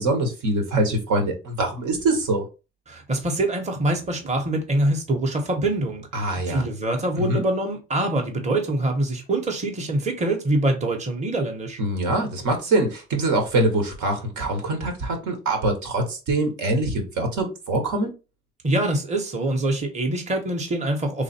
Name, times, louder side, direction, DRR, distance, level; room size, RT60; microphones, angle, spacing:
voice 1, 0.0-2.4 6.1-6.6 7.2-7.4 11.8-18.1, right 2 dB, 75° right, 1.3 m, -24 dB
voice 2, 2.9-11.8 18.6-21.2, right 1 dB, 25° right, 0.9 m, -24 dB
3.2 x 2.4 x 4.2 m
cardioid pair, 90°, 30 cm